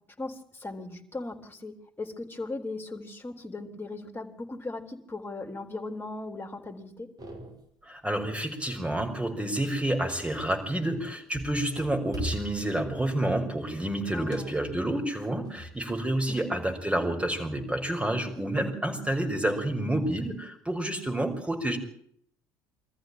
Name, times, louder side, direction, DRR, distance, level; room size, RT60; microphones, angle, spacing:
voice 1, 0.2-7.1 14.1-14.8 16.3-16.6, left 2 dB, 20° left, 7 dB, 3.9 m, -38 dB
sound 1, 7.2-7.8 8.2-8.6 8.9-10.8 11.3-16.0 16.3-17.3 17.9-18.7, right 1 dB, 35° right, 5.8 m, -42 dB
voice 2, 7.8-21.8, right 1 dB, 10° right, 5 dB, 5.8 m, -29 dB
24.0 x 14.5 x 9.0 m, 0.66 s
figure-of-eight pair, 60°, 11 cm